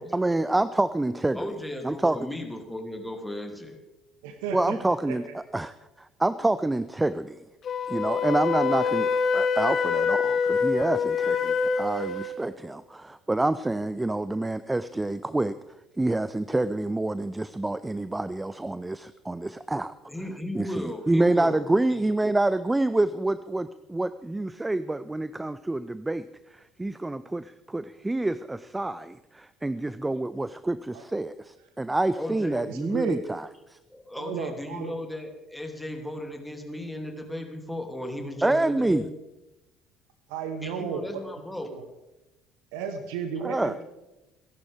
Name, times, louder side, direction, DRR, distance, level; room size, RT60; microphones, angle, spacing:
voice 1, 0.1-1.4 1.8-2.2 4.5-7.4 7.9-15.6 16.0-19.9 20.5-26.2 26.5-33.8 38.4-39.1 43.4-43.7, right 2 dB, 15° right, 16 dB, 0.5 m, -27 dB
voice 2, 1.3-3.8 20.1-22.1 32.2-32.7 33.9-39.1 40.6-41.7, left 1 dB, 5° left, 3 dB, 2.9 m, -36 dB
voice 3, 4.2-4.8 5.1-5.3 30.9-31.0 32.7-33.2 34.2-34.9 40.3-41.2 41.6-41.8 42.7-43.8, right 6 dB, 65° right, 8 dB, 1.2 m, -33 dB
Wind instrument woodwind instrument, 7.6-12.4, left 5 dB, 45° left, 1.3 m, -25 dB
28.0 x 11.5 x 3.6 m, 0.99 s
figure-of-eight pair, 55°, 0 cm